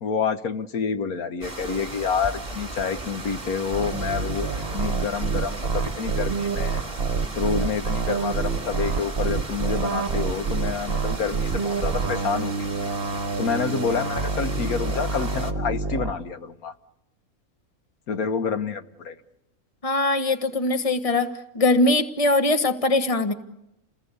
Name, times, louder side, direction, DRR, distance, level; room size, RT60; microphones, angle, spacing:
voice 1, 0.0-6.8 7.4-12.7 13.4-16.7 18.1-19.1, left 6 dB, 80° left, 9 dB, 1.6 m, -28 dB
sound 1, 1.4-15.5, right 2 dB, 25° right, 2.6 m, -37 dB
sound 2, 3.7-16.1, right 4 dB, 45° right, 1.4 m, -27 dB
voice 2, 19.8-21.3 21.5-23.3, left 2 dB, 25° left, 8 dB, 1.4 m, -21 dB
29.5 x 20.0 x 8.2 m, 0.89 s
omnidirectional pair, 1.5 m